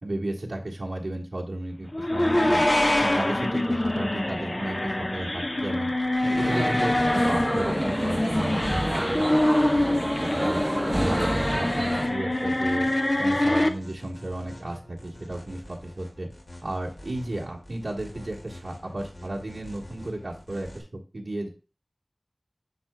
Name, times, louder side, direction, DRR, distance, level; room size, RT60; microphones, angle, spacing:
voice 1, 0.0-2.7 3.0-5.9 6.2-10.6 11.0-12.9 13.2-16.3 16.6-21.5, right 1 dB, 90° right, -3 dB, 1.4 m, -34 dB
sound 1, 1.9-13.7, left 1 dB, 40° left, 0.7 m, -25 dB
sound 2, 6.4-12.1, right 1 dB, 20° right, 0.6 m, -28 dB
sound 3, 10.1-20.8, left 1 dB, 85° left, 2.0 m, -46 dB
9.8 x 4.6 x 2.3 m, 0.34 s
wide cardioid pair, 50°, 0 cm